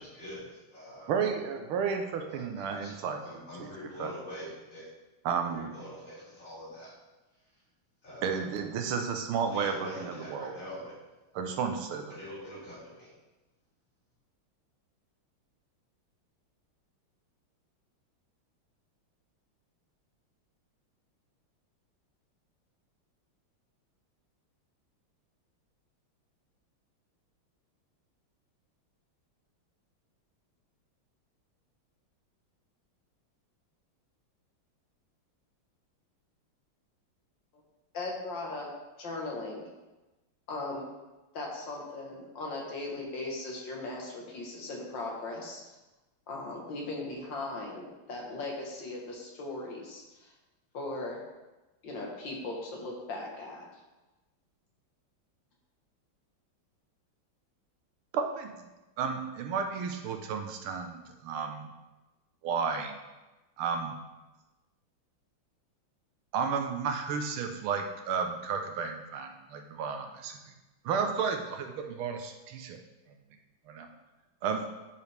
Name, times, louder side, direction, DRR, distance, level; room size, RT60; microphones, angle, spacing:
voice 1, 0.0-1.1 2.3-4.9 5.5-7.0 8.0-8.7 9.5-11.0 12.1-13.1, left 1 dB, 40° left, -7 dB, 2.9 m, -44 dB
voice 2, 1.1-3.2 3.6-3.7 4.0-4.1 5.3-5.7 8.2-10.5 11.4-12.1 58.1-58.5 59.0-61.7 62.4-63.0 63.6-64.0 66.3-70.4 70.9-72.8 73.7-73.9 74.4-74.7, right 6 dB, 85° right, 5 dB, 1.7 m, -32 dB
voice 3, 37.9-38.7 39.0-39.7 40.5-40.9 41.3-45.6 46.3-50.3 50.7-51.2 51.8-53.8, left 2 dB, 60° left, -1 dB, 2.0 m, -38 dB
12.0 x 5.1 x 3.4 m, 1.1 s
omnidirectional pair, 2.3 m